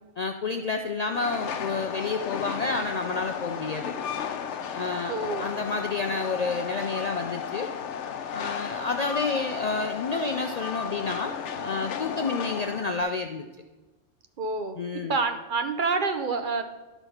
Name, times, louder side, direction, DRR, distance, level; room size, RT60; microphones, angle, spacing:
voice 1, 0.2-3.9 4.7-5.1 5.4-7.7 8.3-13.5 14.8-15.2, left 4 dB, 55° left, 5 dB, 0.4 m, -30 dB
Train, 1.1-13.0, left 7 dB, 80° left, 1.0 m, -34 dB
voice 2, 5.1-5.5 14.4-14.8 15.1-16.6, right 4 dB, 55° right, 8 dB, 0.7 m, -27 dB
12.0 x 4.0 x 5.7 m, 1.2 s
omnidirectional pair, 1.2 m